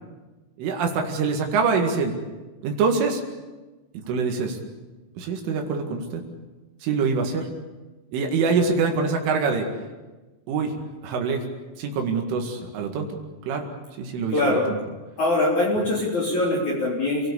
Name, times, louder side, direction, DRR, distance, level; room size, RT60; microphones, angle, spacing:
voice 1, 0.6-2.1 2.6-3.2 3.9-4.6 5.2-6.2 6.8-7.5 8.1-9.7 10.5-10.7 11.0-11.4 11.8-13.2 13.5-13.7 14.0-14.8, right 5 dB, 75° right, 2 dB, 4.5 m, -24 dB
voice 2, 14.3-14.6 15.2-17.3, left 2 dB, 40° left, -3 dB, 4.5 m, -22 dB
30.0 x 18.5 x 8.4 m, 1.2 s
omnidirectional pair, 5.9 m